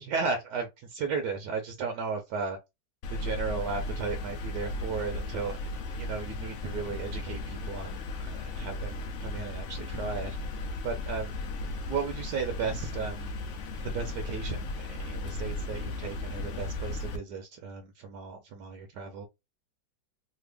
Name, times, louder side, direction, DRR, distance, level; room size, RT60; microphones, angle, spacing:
voice 1, 0.0-2.6 3.1-11.4 11.7-13.3 13.8-19.3, right 5 dB, 75° right, 1.2 m, -35 dB
sound 1, 3.0-17.2, left 2 dB, 75° left, 0.6 m, -36 dB
3.3 x 2.1 x 3.3 m
omnidirectional pair, 1.9 m